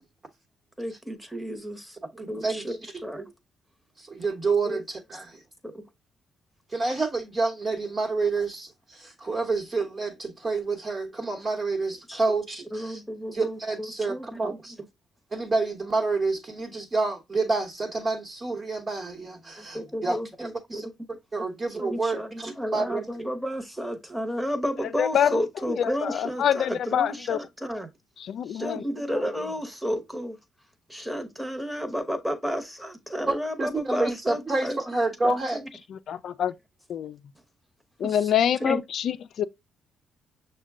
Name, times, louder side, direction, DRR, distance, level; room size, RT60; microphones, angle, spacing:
voice 1, 0.8-2.0 2.3-3.3 4.6-4.8 5.6-5.9 12.1-12.2 12.7-14.6 19.6-20.9 21.7-27.9 28.5-30.4 30.9-34.8 35.2-35.7 38.0-38.3 38.6-38.8, equal, ahead, 1.0 m, -32 dB
voice 2, 2.2-2.7 4.0-5.4 6.7-13.0 13.3-14.7 15.3-20.9 21.3-23.1 33.3-35.6, right 3 dB, 30° right, 1.1 m, -28 dB
voice 3, 25.0-25.4 25.8-27.4 28.3-28.8 36.1-36.5 36.9-37.1 38.0-39.4, left 9 dB, 65° left, 0.3 m, -25 dB
6.3 x 2.2 x 3.5 m
cardioid pair, 90°, 0 cm